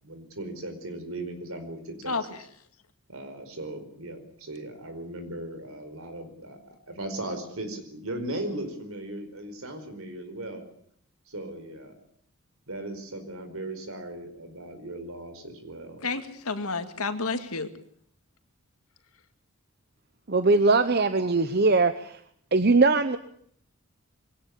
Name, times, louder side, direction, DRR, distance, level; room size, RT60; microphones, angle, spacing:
voice 1, 0.0-2.2 3.1-10.6 11.3-11.9 12.7-16.1, right 1 dB, 75° right, 7 dB, 4.8 m, -37 dB
voice 2, 2.1-2.4 16.0-17.7, left 4 dB, 85° left, 9 dB, 2.2 m, -30 dB
voice 3, 20.3-22.2 22.5-23.2, right 3 dB, 45° right, 11 dB, 0.9 m, -21 dB
22.5 x 17.5 x 8.4 m, 0.64 s
head